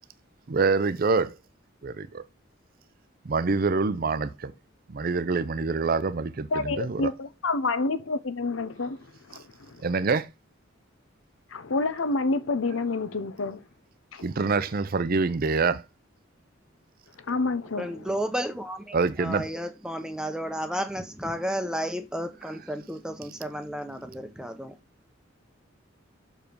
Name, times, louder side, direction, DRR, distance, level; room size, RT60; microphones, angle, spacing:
voice 1, 0.5-1.4 1.8-2.2 3.2-4.5 4.9-7.1 9.8-10.3 14.2-15.8 18.9-19.5, right 4 dB, 45° right, 0.5 m, -26 dB
voice 2, 6.5-9.8 11.5-13.6 14.1-14.2 17.3-18.1, left 3 dB, 90° left, 0.9 m, -28 dB
voice 3, 17.8-24.8, equal, 5° right, 0.8 m, -32 dB
6.6 x 4.9 x 5.1 m
head